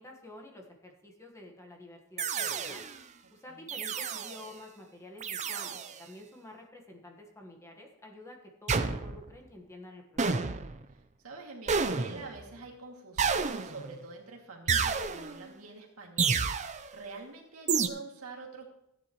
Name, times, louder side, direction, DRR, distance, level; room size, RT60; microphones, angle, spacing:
voice 1, 0.0-2.9 3.3-10.4, left 1 dB, 15° left, 2 dB, 1.4 m, -50 dB
sound 1, 2.2-3.0 3.7-4.5 5.2-6.0 8.7-9.3 10.2-10.8 11.7-12.4 13.2-14.0 14.7-15.4 16.2-16.9 17.7-17.9, right 5 dB, 30° right, 0.6 m, -30 dB
voice 2, 3.5-3.8 10.9-11.0 11.2-18.7, right 3 dB, 70° right, -1 dB, 2.4 m, -46 dB
14.5 x 9.8 x 3.1 m, 0.84 s
head